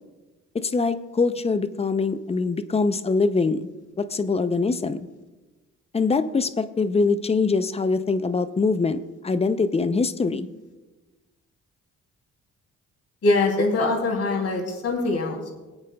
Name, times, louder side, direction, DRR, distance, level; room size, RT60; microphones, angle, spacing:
voice 1, 0.5-3.7 4.1-5.0 5.9-9.0 9.2-10.5, left 4 dB, 20° left, 12 dB, 0.5 m, -23 dB
voice 2, 13.2-15.5, left 2 dB, 55° left, 0 dB, 2.9 m, -23 dB
21.0 x 8.8 x 2.3 m, 1.2 s
cardioid pair, 90°, 30 cm